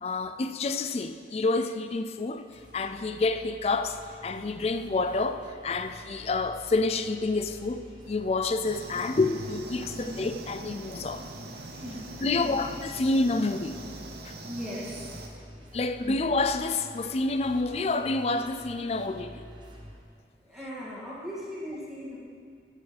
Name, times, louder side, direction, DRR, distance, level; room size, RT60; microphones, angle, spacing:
voice 1, 0.0-2.5 2.7-11.2 12.2-13.8 14.2-14.3 15.7-19.4, left 3 dB, 35° left, 10 dB, 0.4 m, -28 dB
sound 1, 2.5-20.0, equal, 25° right, 1.1 m, -49 dB
sound 2, 8.6-15.3, right 2 dB, 60° right, 0.8 m, -43 dB
voice 2, 11.8-12.6 14.5-15.0 20.4-22.2, equal, 5° right, -9 dB, 2.2 m, -38 dB
16.0 x 7.2 x 3.4 m, 2.3 s
head